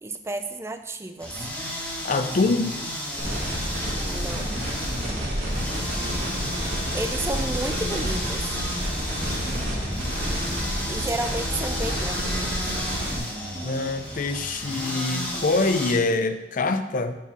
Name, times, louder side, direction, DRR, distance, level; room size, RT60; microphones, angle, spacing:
voice 1, 0.0-1.3 4.0-4.5 6.9-8.6 10.9-12.8, right 2 dB, 15° right, 7 dB, 0.3 m, -32 dB
sound 1, 1.2-15.9, equal, 10° left, 1.4 m, -32 dB
voice 2, 2.0-2.8 13.6-17.2, left 3 dB, 45° left, 9 dB, 0.5 m, -24 dB
sound 2, 3.2-13.2, equal, 40° right, 1.4 m, -30 dB
5.3 x 4.6 x 5.9 m, 1.1 s
head